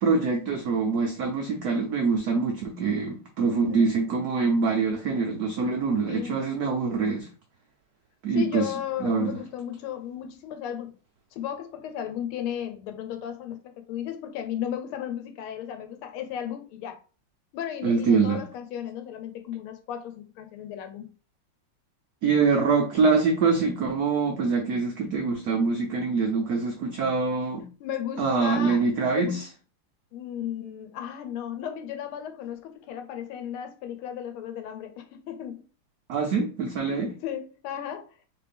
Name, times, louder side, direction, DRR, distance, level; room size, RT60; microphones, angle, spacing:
voice 1, 0.0-7.3 8.2-8.7 9.0-9.4 17.8-18.4 22.2-27.7 28.2-29.4 36.1-37.1, right 4 dB, 90° right, 0.8 m, -24 dB
voice 2, 3.5-3.9 6.1-6.4 8.3-10.9 11.3-17.0 17.5-21.1 27.8-28.8 29.1-29.4 30.1-35.6 36.9-38.3, left 10 dB, 80° left, 1.5 m, -35 dB
3.4 x 3.3 x 3.4 m
omnidirectional pair, 2.4 m